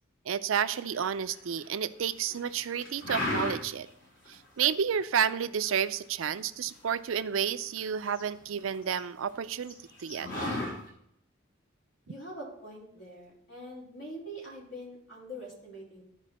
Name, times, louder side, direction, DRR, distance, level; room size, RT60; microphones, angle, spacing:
voice 1, 0.3-3.9 4.3-10.3, right 8 dB, 80° right, 13 dB, 0.5 m, -31 dB
sound 1, 0.9-1.7 2.1-2.5 2.8-3.9 4.2-4.3 4.7-5.2 5.6-7.5 7.8-9.0 9.3-9.4 9.6-10.7, left 2 dB, 90° left, 4.3 m, -34 dB
voice 2, 12.1-16.0, equal, 70° left, -5 dB, 4.5 m, -44 dB
13.5 x 5.0 x 4.2 m, 0.72 s
head